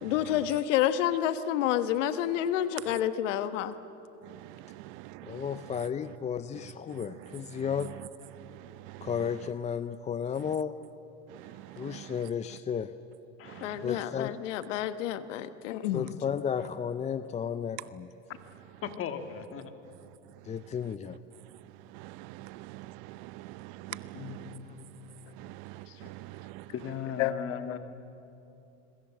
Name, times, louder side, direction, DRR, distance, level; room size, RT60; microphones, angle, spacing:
voice 1, 0.0-3.7 13.6-16.1 27.2-27.8, left 11 dB, 75° left, 1.3 m, -29 dB
voice 2, 5.2-7.9 9.0-10.8 11.8-12.9 13.8-14.4 15.9-18.1 20.4-21.2 24.6-24.8, left 7 dB, 20° left, 0.5 m, -33 dB
voice 3, 13.4-13.9 18.8-19.7 23.9-24.7 26.7-27.8, left 8 dB, 35° left, 2.2 m, -38 dB
voice 4, 22.7-23.5 23.9-24.0 24.2-24.4 26.5-26.6, right 19 dB, 60° right, 0.8 m, -42 dB
26.0 x 23.5 x 7.5 m
supercardioid pair, 115°, 37 cm